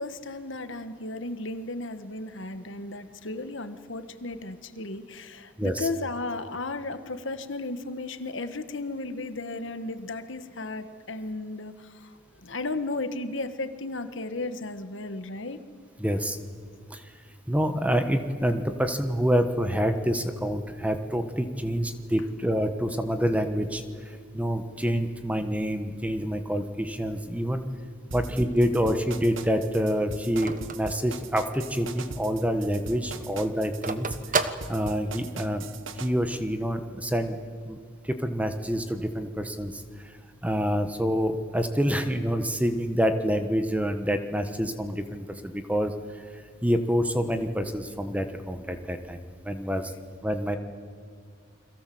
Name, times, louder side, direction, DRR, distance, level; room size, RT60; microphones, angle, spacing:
voice 1, 0.0-15.6, left 2 dB, 60° left, 10 dB, 1.5 m, -34 dB
voice 2, 5.6-5.9 16.0-16.4 16.9-17.1 17.5-27.6 28.1-34.1 34.4-35.6 36.0-37.4 37.6-37.8 38.0-40.2 40.4-49.2 49.4-49.9 50.2-50.6, equal, 5° right, 8 dB, 1.3 m, -27 dB
sound 1, 28.1-36.1, right 4 dB, 65° right, 1.3 m, -40 dB
Telephone, 28.4-31.8 32.2-32.3 32.5-35.4, right 4 dB, 40° right, 1.2 m, -33 dB
29.5 x 22.5 x 7.8 m, 2.1 s
head